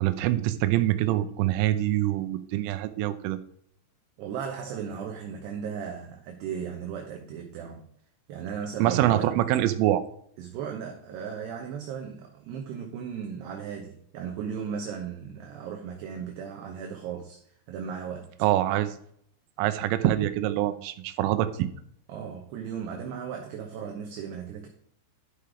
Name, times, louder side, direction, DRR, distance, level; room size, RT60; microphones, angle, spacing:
voice 1, 0.0-3.4 8.8-10.0 18.4-19.0 19.6-21.7, right 14 dB, 90° right, 3.3 m, -25 dB
voice 2, 4.2-7.9 8.3-9.3 10.4-18.3 22.1-24.7, right 7 dB, 70° right, 2.8 m, -36 dB
12.0 x 5.7 x 4.9 m
omnidirectional pair, 5.7 m